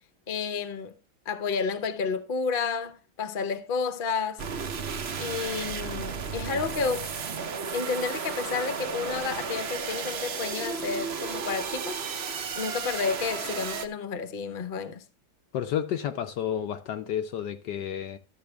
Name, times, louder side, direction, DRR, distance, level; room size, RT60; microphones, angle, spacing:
voice 1, 0.3-0.9 1.3-4.5 5.2-7.1 7.7-12.0 12.6-15.0, left 5 dB, 40° left, 0.8 m, -31 dB
sound 1, 4.4-13.9, right 6 dB, 50° right, 0.7 m, -33 dB
voice 2, 15.5-18.2, left 9 dB, 70° left, 1.1 m, -31 dB
12.0 x 7.5 x 3.4 m
omnidirectional pair, 2.1 m